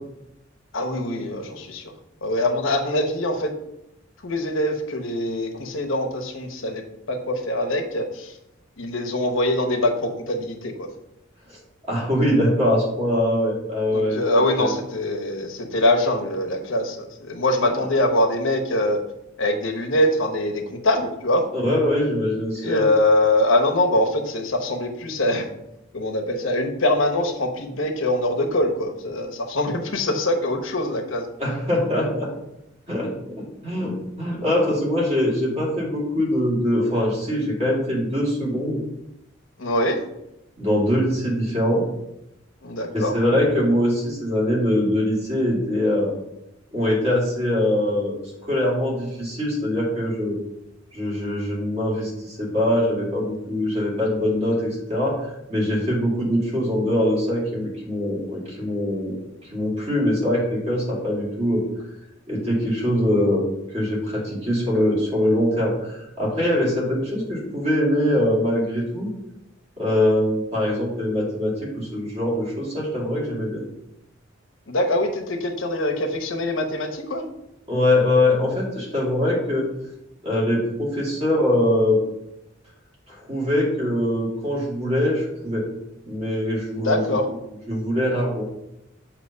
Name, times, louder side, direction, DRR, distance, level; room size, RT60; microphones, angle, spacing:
voice 1, 0.7-1.9 2.2-3.5 4.2-8.4 8.8-10.9 13.9-19.0 19.4-21.5 22.6-25.5 25.9-31.3 39.6-40.0 42.6-43.1 74.7-77.3 86.8-87.3, left 1 dB, 80° left, 3 dB, 1.0 m, -23 dB
voice 2, 11.9-14.2 14.6-14.7 21.5-22.9 31.4-32.3 32.9-38.8 40.6-41.8 42.9-46.1 46.7-50.4 50.9-59.2 59.5-61.6 62.3-63.4 63.7-69.1 69.8-73.6 77.7-79.7 80.2-82.0 83.1-85.7 86.0-87.0 87.7-88.5, left 1 dB, 30° right, -4 dB, 2.3 m, -23 dB
6.9 x 2.9 x 5.3 m, 0.87 s
head